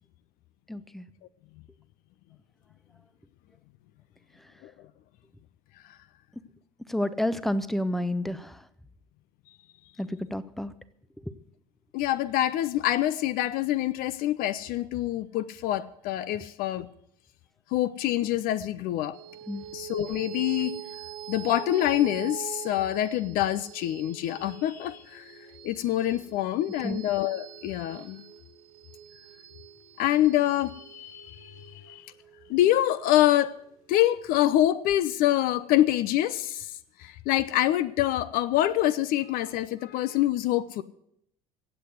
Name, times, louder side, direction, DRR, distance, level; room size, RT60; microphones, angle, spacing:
voice 1, 0.7-1.0 6.9-8.6 10.0-10.7 19.5-19.7 26.8-27.0, left 1 dB, ahead, 0.8 m, -30 dB
voice 2, 11.9-16.9 17.7-19.2 19.7-20.7 21.3-25.2 25.6-28.2 30.0-31.5 31.8-32.1 32.5-33.6 33.9-36.7 37.0-40.8, left 13 dB, 50° left, 0.6 m, -26 dB
sound 1, 19.1-33.9, right 10 dB, 70° right, 2.3 m, -44 dB
15.5 x 8.4 x 7.8 m
figure-of-eight pair, 65°, 19 cm